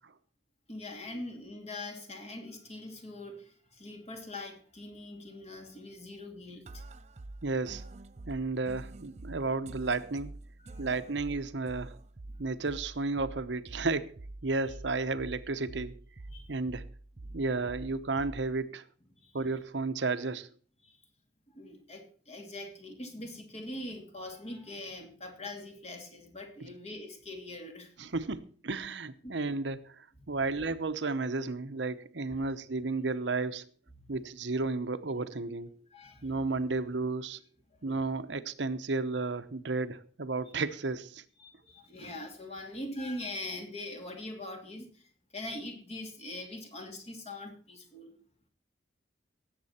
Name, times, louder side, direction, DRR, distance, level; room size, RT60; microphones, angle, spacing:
voice 1, 0.7-6.8 10.6-10.9 12.3-12.5 16.3-16.5 17.2-17.4 19.2-19.4 20.8-21.0 21.5-27.9 29.2-29.3 30.3-30.4 35.9-36.4 37.7-37.8 41.4-48.1, left 1 dB, 35° left, 4 dB, 2.6 m, -43 dB
sound 1, 6.7-18.7, right 2 dB, 40° right, 0.6 m, -47 dB
voice 2, 7.4-7.8 8.3-10.3 10.8-11.9 12.4-15.9 16.5-16.8 17.3-18.8 19.3-20.5 28.0-33.6 34.1-35.7 36.2-37.4 37.8-41.2, right 3 dB, 75° right, 11 dB, 0.9 m, -33 dB
17.5 x 7.8 x 4.3 m, 0.43 s
head